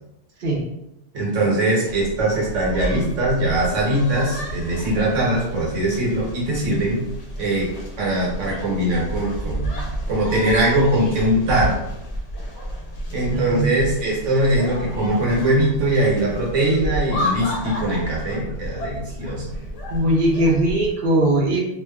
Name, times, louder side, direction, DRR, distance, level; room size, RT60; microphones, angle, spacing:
voice 1, 1.1-7.0 7.4-7.7 8.0-9.7 10.1-11.8 13.1-19.5, right 1 dB, 85° right, -4 dB, 1.2 m, -21 dB
sound 1, 1.9-20.9, equal, 80° left, 1.0 m, -31 dB
voice 2, 13.3-13.7 19.9-21.6, right 1 dB, 55° right, -2 dB, 0.6 m, -20 dB
2.7 x 2.2 x 2.2 m, 0.84 s
omnidirectional pair, 1.2 m